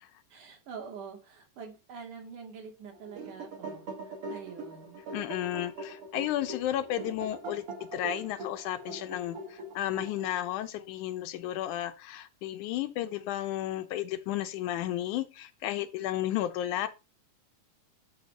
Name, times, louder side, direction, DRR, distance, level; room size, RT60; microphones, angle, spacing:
voice 1, 0.3-5.0, right 6 dB, 75° right, 3.8 m, -45 dB
sound 1, 2.9-10.5, right 2 dB, 50° right, 2.6 m, -42 dB
voice 2, 5.1-7.6 7.9-16.9, left 13 dB, 75° left, 2.2 m, -33 dB
11.0 x 3.7 x 6.5 m
omnidirectional pair, 3.6 m